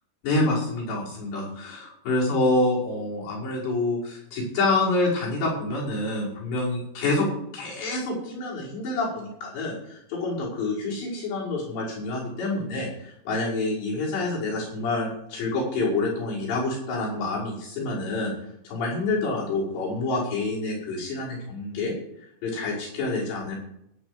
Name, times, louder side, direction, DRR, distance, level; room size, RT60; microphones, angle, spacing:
voice 1, 0.2-7.3 7.5-18.3 18.6-22.0 22.4-23.6, left 2 dB, 70° left, -5 dB, 7.6 m, -27 dB
18.0 x 9.1 x 5.1 m, 0.77 s
omnidirectional pair, 5.2 m